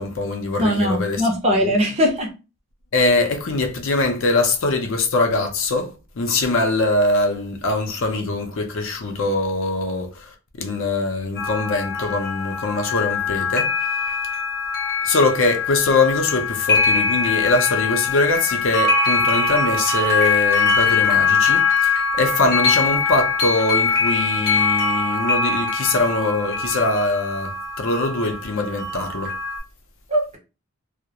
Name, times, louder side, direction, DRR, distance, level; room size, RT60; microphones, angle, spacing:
voice 1, 0.0-1.7 2.9-14.0 15.0-29.3, left 2 dB, 60° left, 0.5 m, -22 dB
voice 2, 0.6-2.3 30.1-30.4, equal, 30° right, 0.6 m, -20 dB
sound 1, 11.4-29.6, left 4 dB, 45° left, 0.8 m, -22 dB
2.3 x 2.0 x 2.8 m
head